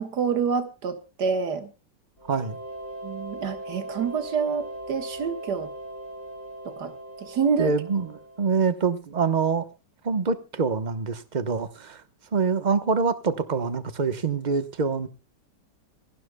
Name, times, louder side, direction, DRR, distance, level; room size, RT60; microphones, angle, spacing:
voice 1, 0.0-1.7 3.0-5.7 6.7-6.9 7.2-7.7, right 6 dB, 70° right, 2.1 m, -27 dB
sound 1, 2.2-8.8, right 1 dB, 60° left, 7.5 m, -39 dB
voice 2, 7.6-9.7 10.0-12.0 12.3-15.1, right 5 dB, 30° right, 1.0 m, -25 dB
26.5 x 12.0 x 2.2 m
omnidirectional pair, 1.8 m